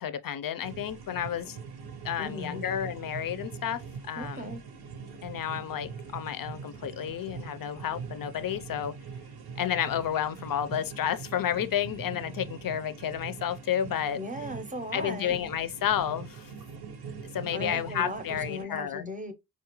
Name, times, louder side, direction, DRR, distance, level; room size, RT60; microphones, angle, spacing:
voice 1, 0.0-1.6 2.0-4.5 5.2-8.9 9.6-14.2 14.9-16.5 17.3-19.1, left 9 dB, 60° left, 0.5 m, -31 dB
sound 1, 0.6-18.6, right 5 dB, 80° right, 0.7 m, -42 dB
voice 2, 2.2-2.6 4.2-4.6 14.1-15.4 17.5-19.3, equal, 20° right, 0.6 m, -37 dB
4.2 x 2.3 x 2.9 m
wide cardioid pair, 135°, 38 cm